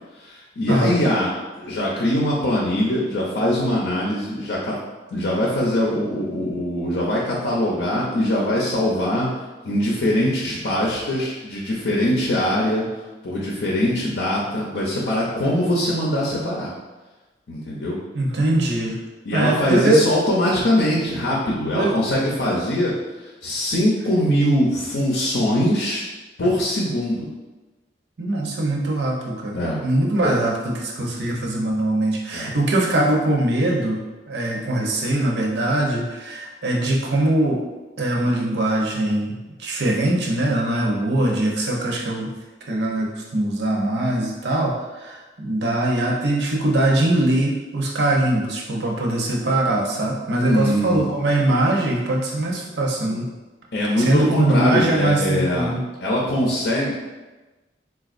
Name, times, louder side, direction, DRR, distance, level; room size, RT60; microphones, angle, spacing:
voice 1, 0.2-4.7 5.1-9.3 9.6-12.8 13.2-16.7 17.5-18.0 19.2-26.0 26.4-27.3 29.5-29.8 32.3-32.5 50.5-51.1 53.7-55.7 56.0-56.9, left 1 dB, 75° left, -4 dB, 0.6 m, -22 dB
voice 2, 18.1-19.0 19.3-20.0 21.7-22.0 28.2-34.0 34.3-37.6 38.0-42.3 42.7-53.3 54.0-55.8, right 1 dB, 70° right, -1 dB, 0.6 m, -22 dB
4.0 x 2.3 x 2.5 m, 1.2 s
head